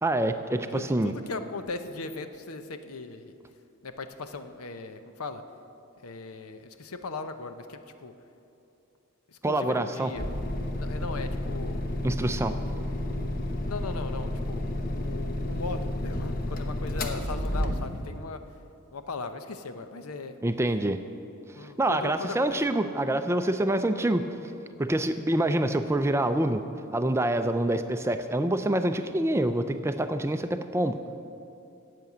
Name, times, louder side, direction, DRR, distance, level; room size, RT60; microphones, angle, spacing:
voice 1, 0.0-1.1 9.4-10.1 12.0-12.6 20.4-21.0 21.8-24.3 24.8-26.6 26.9-31.0, right 1 dB, 10° right, 9 dB, 0.4 m, -26 dB
voice 2, 0.7-3.3 3.8-5.4 6.0-8.1 9.4-10.3 10.7-11.8 13.7-18.4 18.9-20.3 21.5-22.6, left 3 dB, 90° left, 9 dB, 0.8 m, -38 dB
sound 1, 10.2-18.2, left 1 dB, 40° left, 0.9 m, -31 dB
10.5 x 7.7 x 8.4 m, 2.8 s
head